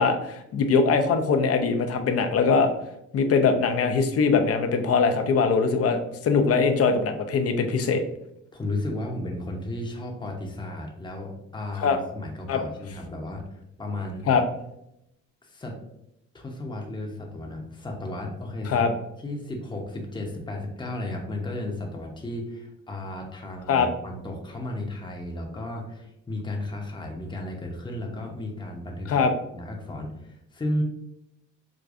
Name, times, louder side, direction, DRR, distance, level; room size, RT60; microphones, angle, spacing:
voice 1, 0.0-2.7 3.1-8.0 11.8-12.0 12.5-12.6 14.3-14.4 18.7-18.9 23.7-23.9 29.1-29.3, left 5 dB, 50° left, 7 dB, 0.6 m, -22 dB
voice 2, 8.5-14.3 15.4-15.7 16.3-18.8 19.2-29.1 29.5-30.8, left 1 dB, 15° left, 1 dB, 0.7 m, -34 dB
4.8 x 2.2 x 2.5 m, 0.81 s
cardioid pair, 90°, 30 cm